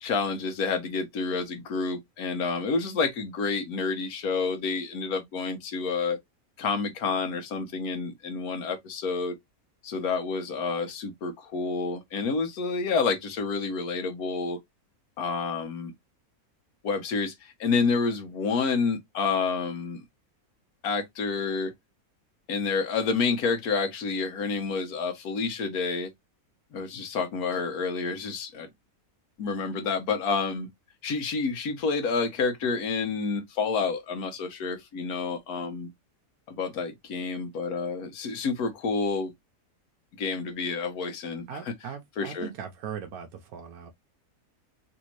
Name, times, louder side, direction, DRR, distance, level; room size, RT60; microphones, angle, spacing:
voice 1, 0.0-6.2 6.6-9.3 9.8-14.6 15.2-15.9 16.8-20.0 20.8-21.7 22.5-26.1 26.7-28.7 29.4-30.7 31.0-35.9 36.5-39.3 40.2-41.5 42.2-42.5, left 4 dB, 80° left, 1.4 m, -29 dB
voice 2, 41.5-43.9, right 8 dB, 85° right, 1.1 m, -39 dB
3.4 x 2.6 x 3.0 m
omnidirectional pair, 1.6 m